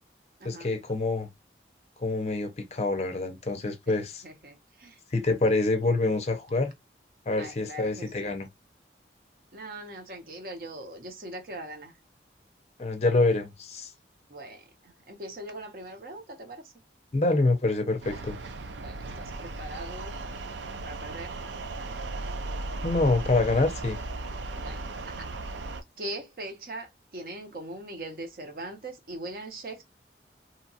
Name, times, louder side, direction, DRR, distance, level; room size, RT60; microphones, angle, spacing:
voice 1, 0.4-1.3 2.0-4.2 5.1-6.7 7.3-8.5 12.8-13.9 17.1-18.4 22.8-24.0, left 2 dB, 35° left, 0.5 m, -26 dB
voice 2, 4.2-5.0 7.4-8.3 9.5-11.9 14.3-16.7 18.8-20.2 20.8-21.8 24.6-24.8 25.1-25.3 26.0-29.8, right 1 dB, 55° right, 0.7 m, -41 dB
sound 1, 18.0-25.8, right 2 dB, 85° right, 0.5 m, -36 dB
2.8 x 2.2 x 2.7 m
head